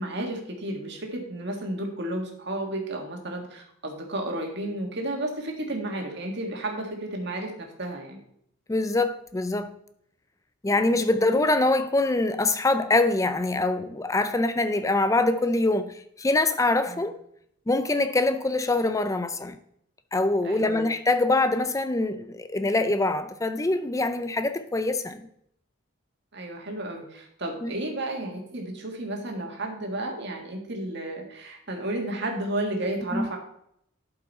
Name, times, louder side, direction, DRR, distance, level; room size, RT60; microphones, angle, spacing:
voice 1, 0.0-8.2 16.9-17.1 20.4-20.8 26.3-33.4, right 1 dB, 55° right, 1.8 m, -32 dB
voice 2, 8.7-9.7 10.6-17.1 17.7-19.6 20.1-25.2 27.6-27.7 33.1-33.3, left 2 dB, 15° left, 0.4 m, -24 dB
11.5 x 5.4 x 4.2 m
head